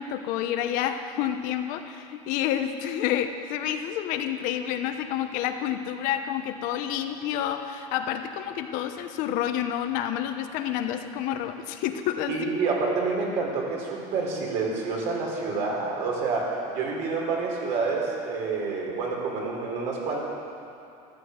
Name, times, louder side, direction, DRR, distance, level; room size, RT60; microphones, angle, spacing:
voice 1, 0.0-12.4, left 10 dB, 65° left, 7 dB, 1.1 m, -29 dB
voice 2, 12.3-20.2, right 4 dB, 60° right, -2 dB, 4.4 m, -28 dB
14.0 x 13.0 x 8.1 m, 2.7 s
cardioid pair, 160°, 15 cm